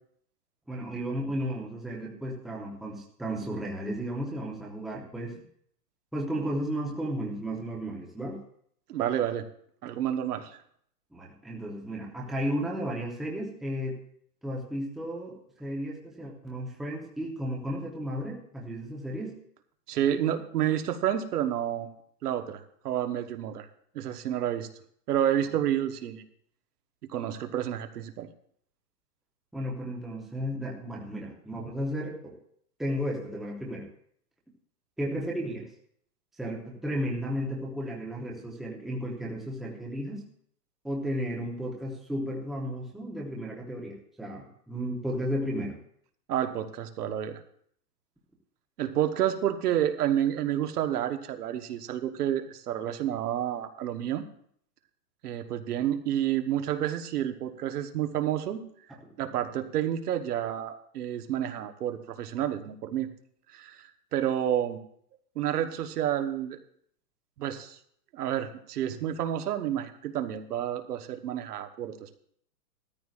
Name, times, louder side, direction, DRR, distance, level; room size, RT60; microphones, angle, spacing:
voice 1, 0.7-5.5 6.1-8.4 11.1-14.0 14.4-19.4 29.5-32.3 32.8-33.9 35.0-35.7 36.4-40.2 40.8-45.8, equal, ahead, -3 dB, 0.8 m, -34 dB
voice 2, 8.9-9.4 9.8-10.6 19.9-21.9 22.2-23.7 23.9-24.7 25.1-26.2 27.1-28.3 46.3-47.4 48.8-54.2 55.2-58.6 59.2-63.1 63.5-64.8 65.3-66.6 67.4-67.8 68.1-72.2, right 10 dB, 70° right, 7 dB, 1.2 m, -29 dB
15.5 x 13.5 x 2.5 m, 0.65 s
hypercardioid pair, 155°, 48 cm